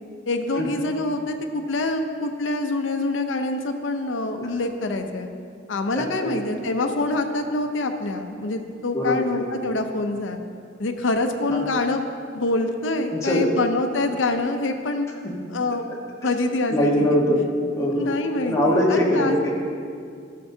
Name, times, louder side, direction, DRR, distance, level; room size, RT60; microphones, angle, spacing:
voice 1, 0.3-5.3 5.7-10.4 10.8-12.0 12.3-15.1 15.5-15.8 16.2-17.1 17.9-19.5, left 2 dB, 85° left, 6 dB, 0.6 m, -25 dB
voice 2, 5.9-6.4 8.9-9.4 11.5-11.6 13.1-13.5 15.2-15.3 16.2-16.3 16.7-17.4 17.8-18.1 18.4-19.5, equal, 15° left, -4 dB, 1.2 m, -22 dB
13.0 x 6.7 x 2.7 m, 2.3 s
head